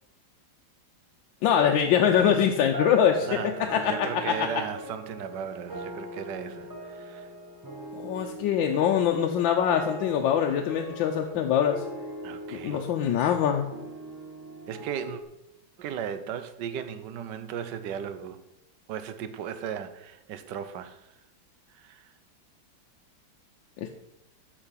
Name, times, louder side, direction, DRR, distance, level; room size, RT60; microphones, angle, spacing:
voice 1, 1.4-4.3 7.9-11.8 12.6-13.7 23.8-23.9, left 8 dB, 80° left, 1.4 m, -24 dB
sound 1, 1.9-15.2, right 1 dB, 15° right, 0.7 m, -40 dB
voice 2, 3.3-7.3 12.2-12.9 14.7-15.2 15.8-18.4 18.9-21.0 21.7-22.1, right 8 dB, 75° right, 1.3 m, -36 dB
8.0 x 5.8 x 5.6 m
omnidirectional pair, 2.0 m